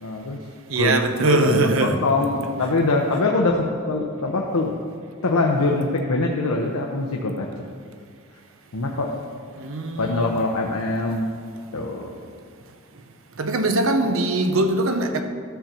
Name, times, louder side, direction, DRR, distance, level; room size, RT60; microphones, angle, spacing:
voice 1, 0.0-0.4 0.8-1.0 1.3-4.7 5.2-7.7 8.7-9.3 10.0-11.4 11.7-12.1, left 2 dB, 90° left, 0.8 m, -23 dB
voice 2, 0.7-2.0 9.6-10.3 13.4-15.2, right 2 dB, 65° right, 0.8 m, -21 dB
12.5 x 4.4 x 6.7 m
head